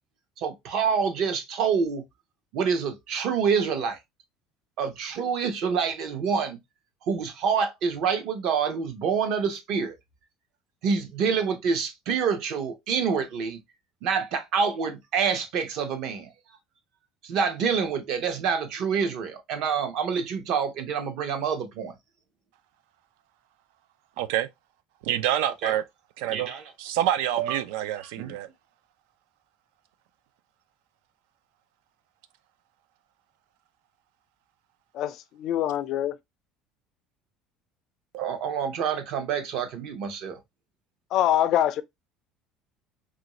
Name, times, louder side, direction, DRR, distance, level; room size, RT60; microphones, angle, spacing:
voice 1, 0.4-2.0 2.5-4.0 4.8-6.6 7.0-9.9 10.8-13.6 14.0-16.3 17.2-21.9 25.6-25.7 26.3-26.6 27.4-27.6 28.0-28.3 38.1-40.4, right 6 dB, 50° right, 0.7 m, -27 dB
voice 2, 24.2-24.5 25.0-25.8 26.2-26.5 26.8-28.5, right 11 dB, 90° right, 0.4 m, -27 dB
voice 3, 34.9-36.2 41.1-41.8, left 11 dB, 45° left, 0.3 m, -24 dB
3.1 x 2.5 x 2.9 m
cardioid pair, 175°, 0 cm